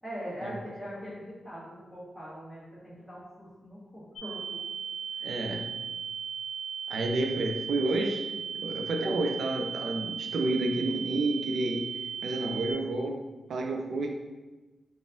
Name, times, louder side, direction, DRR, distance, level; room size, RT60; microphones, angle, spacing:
voice 1, 0.0-4.6 5.1-5.3, equal, 5° right, -9 dB, 1.3 m, -42 dB
sound 1, 4.2-12.7, right 7 dB, 75° left, 0.6 m, -37 dB
voice 2, 5.2-5.7 6.9-8.3 8.6-11.8 12.2-13.2 13.5-14.1, right 2 dB, 85° right, 3 dB, 0.4 m, -30 dB
4.0 x 2.4 x 3.7 m, 1.2 s
wide cardioid pair, 145°, 0 cm